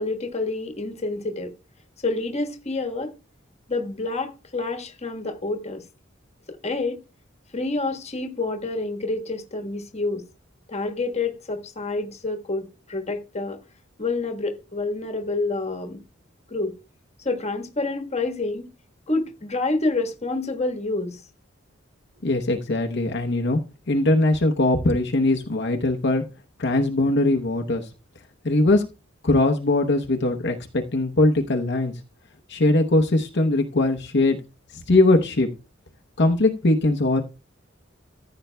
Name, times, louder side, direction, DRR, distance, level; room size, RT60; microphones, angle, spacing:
voice 1, 0.0-1.5 2.0-3.1 3.7-5.8 6.6-7.0 7.5-10.2 10.7-13.6 14.0-16.0 16.5-16.7 17.2-18.7 19.1-21.2, left 3 dB, 35° left, 1.4 m, -28 dB
voice 2, 22.2-23.6 23.9-26.2 26.6-27.9 28.4-28.8 29.2-31.9 32.5-34.4 34.9-35.5 36.2-37.2, left 2 dB, 60° left, 0.9 m, -21 dB
14.5 x 7.8 x 2.2 m
head